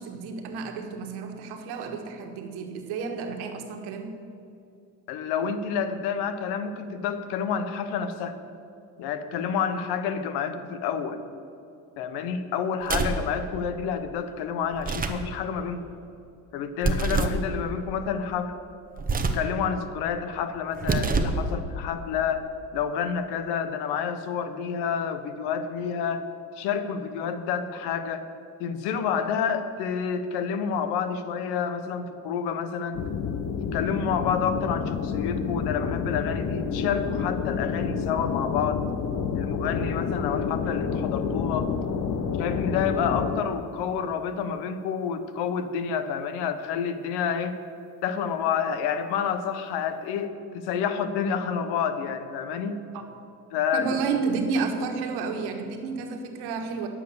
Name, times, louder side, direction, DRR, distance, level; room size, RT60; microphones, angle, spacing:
voice 1, 0.0-4.2 52.9-53.0 53.7-56.9, right 5 dB, 80° right, 5 dB, 1.5 m, -31 dB
voice 2, 5.1-8.4 9.0-11.2 12.0-15.9 16.5-18.5 19.3-26.3 26.6-28.3 28.6-33.0 33.7-38.8 39.3-41.7 42.4-47.6 48.0-52.8 53.5-53.9, left 7 dB, 85° left, 10 dB, 1.0 m, -29 dB
sound 1, 12.8-13.3 14.7-15.3 16.8-17.4 19.0-19.5 20.7-21.5, right 4 dB, 20° right, 0.9 m, -26 dB
sound 2, 32.9-43.4, left 6 dB, 45° left, 0.8 m, -29 dB
10.5 x 7.6 x 6.8 m, 2.6 s
cardioid pair, 105°, 38 cm